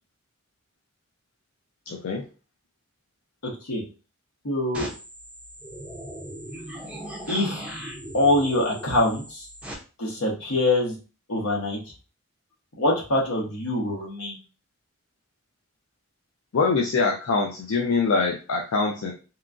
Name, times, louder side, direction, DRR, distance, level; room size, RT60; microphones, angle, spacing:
voice 1, 1.9-2.2 16.5-19.1, left 4 dB, 75° left, 0 dB, 0.4 m, -24 dB
voice 2, 3.4-3.8 4.4-4.9 7.3-7.6 8.1-9.5 10.0-11.0 11.3-11.8 12.8-14.4, left 1 dB, 90° left, -1 dB, 1.0 m, -24 dB
sound 1, 4.7-9.7, right 1 dB, 5° right, 0.4 m, -38 dB
2.9 x 2.3 x 2.4 m, 0.34 s
head